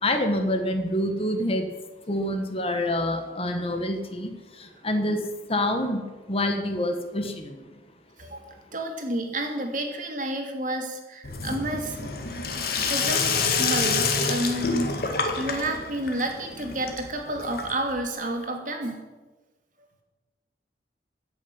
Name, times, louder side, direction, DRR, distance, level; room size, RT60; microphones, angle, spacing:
voice 1, 0.0-1.7 2.1-4.3 4.8-5.2 5.5-6.0 6.3-7.6, left 1 dB, 30° left, 6 dB, 1.6 m, -26 dB
voice 2, 8.2-12.0 12.9-13.3 13.6-15.0 15.4-19.1, right 1 dB, 45° right, 3 dB, 2.6 m, -30 dB
Sink (filling or washing), 11.2-18.0, left 4 dB, 55° left, 2.1 m, -27 dB
15.0 x 7.1 x 9.8 m, 1.2 s
head